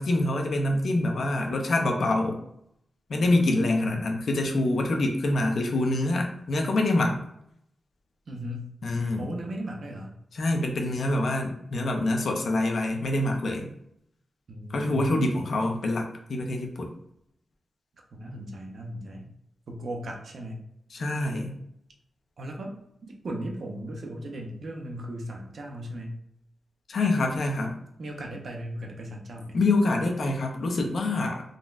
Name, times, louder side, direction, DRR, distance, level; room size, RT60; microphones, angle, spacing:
voice 1, 0.0-2.4 3.1-7.2 8.8-9.3 10.3-13.7 14.7-16.9 20.9-21.5 26.9-27.8 29.5-31.4, left 2 dB, 65° left, 2 dB, 0.5 m, -26 dB
voice 2, 3.3-4.2 8.3-8.7 9.2-10.2 14.5-15.5 18.1-19.3 19.7-20.6 22.4-22.7 23.0-26.2 28.0-29.6, equal, 60° right, 1 dB, 0.6 m, -37 dB
3.7 x 2.1 x 2.4 m, 0.76 s
wide cardioid pair, 115°, 0 cm